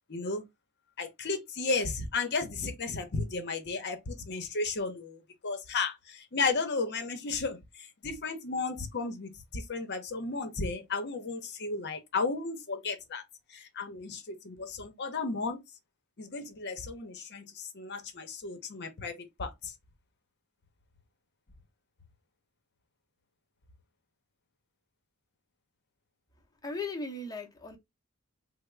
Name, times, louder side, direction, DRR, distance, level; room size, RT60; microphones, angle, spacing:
voice 1, 0.1-0.4 1.0-13.2 13.5-15.6 16.2-19.7, left 4 dB, 50° left, 0.7 m, -34 dB
voice 2, 26.6-27.8, left 3 dB, 15° left, 0.7 m, -37 dB
3.4 x 2.0 x 3.2 m
head